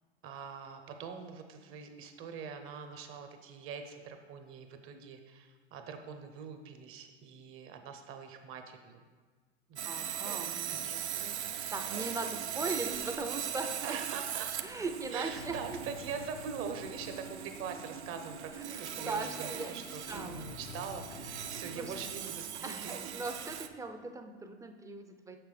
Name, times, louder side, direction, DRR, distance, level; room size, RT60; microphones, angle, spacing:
voice 1, 0.2-9.0 9.7-9.8 10.4-11.0 13.8-14.5 15.1-23.1, right 6 dB, 40° right, 6 dB, 0.8 m, -43 dB
voice 2, 9.8-14.0 14.6-15.8 18.5-19.8 20.1-20.4 21.7-21.9 22.6-25.4, right 3 dB, 10° right, 6 dB, 0.5 m, -39 dB
Sawing, 9.8-23.7, right 9 dB, 85° right, 0.5 m, -40 dB
sound 1, 15.2-22.3, left 5 dB, 80° left, 0.6 m, -50 dB
6.7 x 6.0 x 3.3 m, 1.5 s
hypercardioid pair, 90°, 33 cm